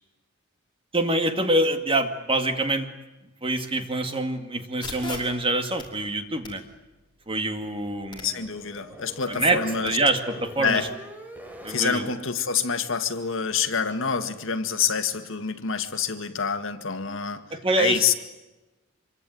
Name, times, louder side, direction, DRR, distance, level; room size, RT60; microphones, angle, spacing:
voice 1, 0.9-2.9 3.4-6.6 7.3-8.3 9.3-10.9 11.6-12.1 17.5-18.0, right 2 dB, 25° right, 2.2 m, -25 dB
sound 1, 4.8-9.9, left 4 dB, 25° left, 5.8 m, -43 dB
sound 2, 7.4-12.1, equal, 10° right, 3.6 m, -43 dB
voice 2, 8.2-10.0 10.6-10.9 11.7-17.5 17.8-18.1, left 6 dB, 65° left, 1.9 m, -27 dB
26.5 x 24.0 x 9.4 m
head